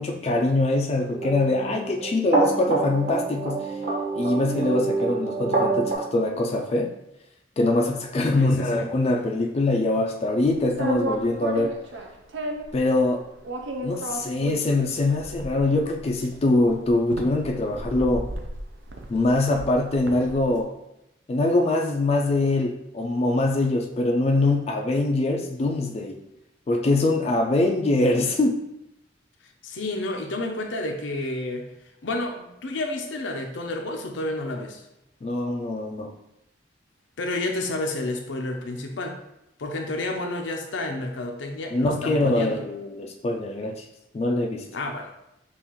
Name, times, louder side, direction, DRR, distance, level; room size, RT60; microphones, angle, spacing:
voice 1, 0.0-3.7 4.1-6.9 7.6-11.8 12.7-13.2 13.8-18.3 19.1-20.7 21.3-26.2 26.7-28.7 35.2-36.1 41.7-43.9 44.1-44.7, left 2 dB, 35° left, 2 dB, 0.3 m, -23 dB
sound 1, 1.0-6.0, right 3 dB, 45° right, 1.2 m, -26 dB
voice 2, 8.4-8.9 29.6-31.7 32.0-34.8 37.2-39.2 39.6-42.6 44.7-45.1, left 2 dB, 90° left, 3 dB, 0.6 m, -30 dB
sound 2, 10.6-12.8 13.4-20.5, right 2 dB, 85° right, 0.6 m, -33 dB
5.5 x 2.4 x 3.0 m, 0.85 s
head